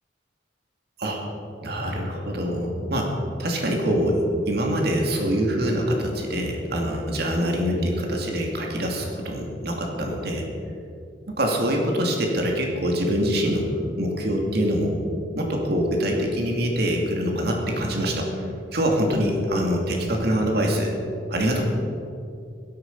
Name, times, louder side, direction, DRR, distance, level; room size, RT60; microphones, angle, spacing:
voice 1, 1.6-3.1 3.4-10.5 11.4-13.7 14.0-15.0 15.3-18.5 18.7-20.9 21.3-21.6, equal, 60° right, 1 dB, 2.5 m, -24 dB
16.5 x 13.0 x 5.5 m, 2.5 s
head